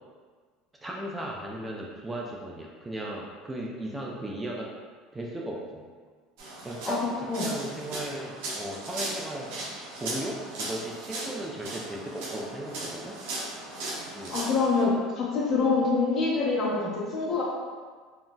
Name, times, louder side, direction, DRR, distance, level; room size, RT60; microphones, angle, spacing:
voice 1, 0.8-4.7 5.1-5.8 6.6-9.5 10.0-13.2 14.1-14.4, right 1 dB, 15° right, -3 dB, 0.4 m, -36 dB
sound 1, 6.4-14.8, right 2 dB, 80° right, 0.6 m, -37 dB
voice 2, 14.3-17.4, left 4 dB, 45° left, -6 dB, 1.0 m, -25 dB
3.8 x 2.0 x 2.2 m, 1.5 s
supercardioid pair, 110°, 0 cm